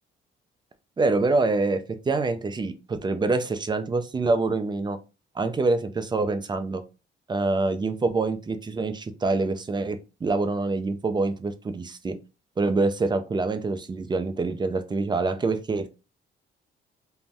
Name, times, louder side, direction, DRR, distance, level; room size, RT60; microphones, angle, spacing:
voice 1, 1.0-5.0 5.4-6.8 7.3-12.2 12.6-15.9, right 3 dB, 20° right, 0.4 m, -26 dB
2.5 x 2.1 x 3.3 m
cardioid pair, 90°, 20 cm